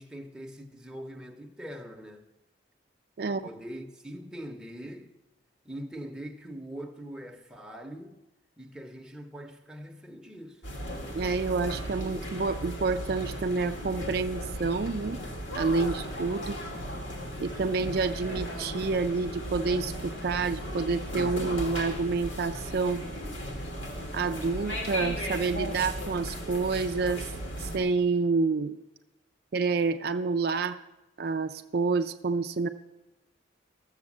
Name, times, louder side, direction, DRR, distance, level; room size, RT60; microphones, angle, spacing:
voice 1, 0.0-2.3 3.2-5.1 5.6-8.2 8.6-10.6, equal, 5° right, 0.9 m, -42 dB
sound 1, 10.6-27.8, equal, 90° left, 2.6 m, -36 dB
voice 2, 11.1-15.2 15.5-16.6 17.4-23.0 24.1-27.3 27.6-28.7 29.5-30.8 31.2-32.7, right 4 dB, 55° right, 0.4 m, -28 dB
13.0 x 7.2 x 7.3 m
head